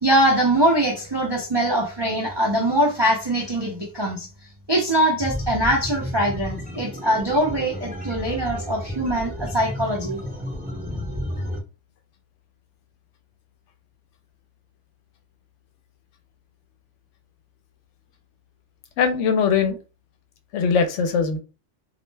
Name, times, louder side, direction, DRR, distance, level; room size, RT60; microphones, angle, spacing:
voice 1, 0.0-4.3 4.7-10.2, right 1 dB, 45° right, -2 dB, 0.3 m, -22 dB
sound 1, 5.2-11.6, left 1 dB, 10° right, 0.9 m, -32 dB
voice 2, 19.0-19.8 20.5-21.4, left 6 dB, 75° left, 6 dB, 0.9 m, -21 dB
2.4 x 2.1 x 3.2 m, 0.31 s
omnidirectional pair, 1.3 m